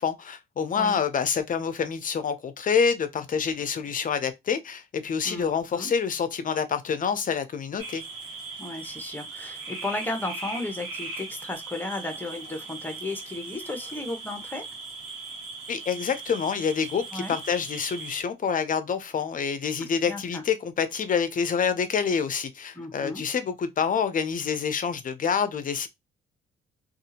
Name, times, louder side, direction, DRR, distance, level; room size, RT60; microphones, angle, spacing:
voice 1, 0.0-8.0 15.7-25.9, left 6 dB, 40° left, 0.6 m, -27 dB
voice 2, 5.2-5.9 8.6-14.6 17.1-17.4 19.8-20.4 22.7-23.2, left 2 dB, 10° left, 1.0 m, -34 dB
sound 1, 7.8-18.2, right 3 dB, 90° right, 1.2 m, -39 dB
2.7 x 2.4 x 2.8 m
cardioid pair, 90°, 20 cm